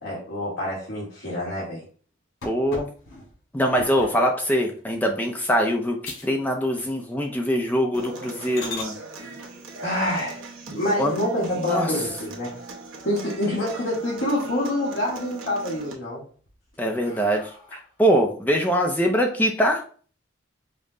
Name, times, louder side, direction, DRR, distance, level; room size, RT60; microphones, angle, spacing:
voice 1, 0.0-1.8 9.8-10.4 10.7-12.5 13.0-16.2, left 1 dB, 65° left, -7 dB, 1.5 m, -26 dB
sound 1, 2.4-4.2 4.8-5.1 5.5-5.6 6.0-6.4 6.7-7.2 7.6-7.7 8.2-8.9 10.9-11.6 12.1-12.2 12.6-12.7 13.0-13.8 14.1-14.7 15.1-15.7 16.3-18.0, left 2 dB, 80° left, 2.2 m, -41 dB
voice 2, 2.4-2.9 3.5-8.9 11.0-11.2 11.6-11.9 16.8-17.5 18.0-19.8, equal, 10° left, 2 dB, 0.4 m, -23 dB
Human voice / Acoustic guitar, 7.9-15.9, right 3 dB, 75° right, 0.9 m, -39 dB
5.3 x 2.1 x 3.7 m, 0.43 s
head